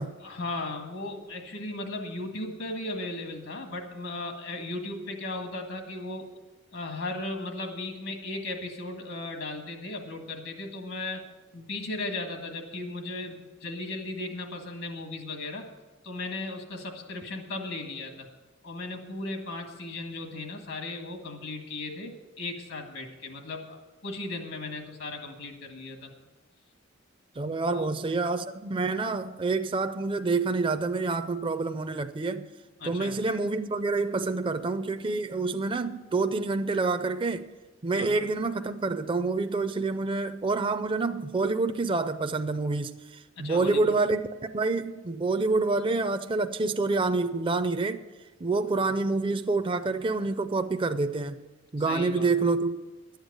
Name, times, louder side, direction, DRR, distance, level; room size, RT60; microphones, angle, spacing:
voice 1, 0.2-6.3 6.7-11.2 11.5-15.7 16.0-18.3 18.6-23.8 24.0-26.1 27.6-27.9 32.8-33.2 37.9-38.2 43.4-43.9 51.9-52.3, left 2 dB, 80° left, 1.8 m, -36 dB
voice 2, 27.4-32.5 32.8-37.5 37.8-43.0 43.4-44.2 44.5-48.0 48.4-51.4 51.7-52.8, right 3 dB, 25° right, 0.5 m, -27 dB
11.5 x 8.1 x 8.1 m
head